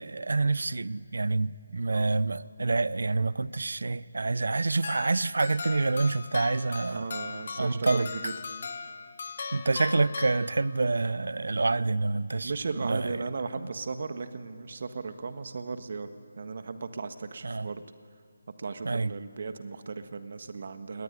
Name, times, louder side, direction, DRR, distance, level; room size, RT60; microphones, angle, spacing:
voice 1, 0.0-7.0 7.6-8.1 9.5-12.5 12.8-13.1 13.6-13.7 17.4-17.7 18.8-19.1, right 3 dB, 75° right, 0.7 m, -27 dB
sound 1, 4.8-11.0, left 5 dB, 50° left, 1.2 m, -39 dB
voice 2, 6.9-8.3 12.4-16.1 16.4-17.8 18.6-21.0, right 4 dB, 55° right, 1.5 m, -36 dB
22.0 x 19.5 x 9.7 m
figure-of-eight pair, 155°, 0 cm